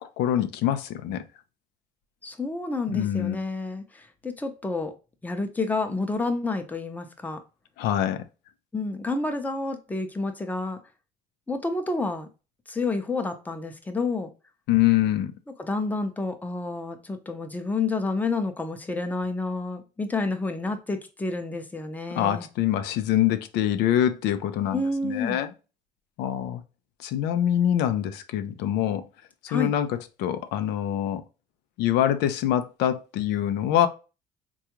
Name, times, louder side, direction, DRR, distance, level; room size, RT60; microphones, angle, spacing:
voice 1, 0.0-1.2 2.9-3.4 7.8-8.3 14.7-15.3 22.1-25.5 26.2-26.6 27.0-29.0 29.5-31.2 31.8-33.9, left 11 dB, 90° left, 0.4 m, -25 dB
voice 2, 2.2-4.9 5.2-7.4 8.7-10.8 11.5-12.3 12.7-14.3 15.6-22.5 24.7-25.4 29.5-29.7, left 3 dB, 10° left, 0.5 m, -29 dB
3.7 x 2.3 x 2.9 m
cardioid pair, 110°, 17 cm